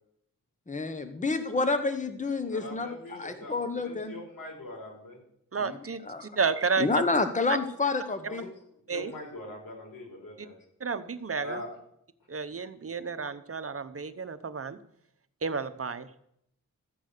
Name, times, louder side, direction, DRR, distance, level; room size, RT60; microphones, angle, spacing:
voice 1, 0.7-4.1 5.6-5.7 6.1-6.3 6.8-8.4, left 3 dB, 20° left, 9 dB, 1.2 m, -29 dB
voice 2, 2.5-5.2 8.3-8.5 8.9-10.5 11.4-11.7, left 1 dB, 90° left, 0 dB, 4.5 m, -42 dB
voice 3, 5.5-7.0 7.5-7.6 8.9-9.1 10.8-11.6 12.3-14.8 15.4-16.2, right 5 dB, 45° right, 11 dB, 0.9 m, -31 dB
14.0 x 8.2 x 6.6 m, 0.74 s
cardioid pair, 75°, 33 cm